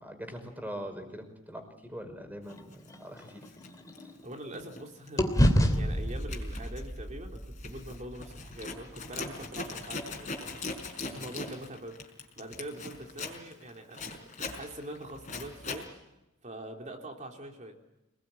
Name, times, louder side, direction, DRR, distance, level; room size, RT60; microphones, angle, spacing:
voice 1, 0.0-1.6 1.9-3.3 11.0-11.2, equal, 10° right, 6 dB, 5.4 m, -42 dB
sound 1, 2.5-4.8 5.2-9.4, equal, 15° left, 2.9 m, -30 dB
Zipper (clothing), 2.7-2.9 3.4-4.8 5.1-5.4 5.7-15.9, left 3 dB, 35° left, 5.0 m, -41 dB
voice 2, 4.2-10.6 11.1-12.0 12.4-15.9 16.4-17.7, right 1 dB, 35° right, 2 dB, 3.6 m, -44 dB
27.5 x 21.0 x 9.3 m, 0.93 s
head